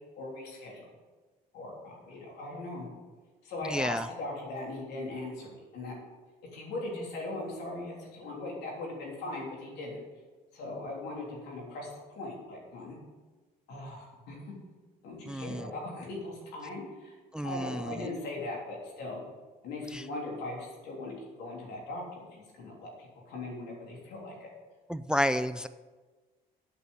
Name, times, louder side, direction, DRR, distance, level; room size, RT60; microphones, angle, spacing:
voice 1, 0.2-0.9 1.5-2.9 3.4-6.0 6.5-10.0 10.5-13.0 13.7-14.4 15.0-19.2 19.6-24.5, left 2 dB, 80° left, -2 dB, 3.4 m, -39 dB
voice 2, 3.7-4.1 15.3-15.7 17.3-18.0 19.9-20.0 24.9-25.7, equal, 5° right, 13 dB, 0.3 m, -30 dB
8.4 x 6.3 x 8.0 m, 1.3 s
cardioid pair, 110°, 17 cm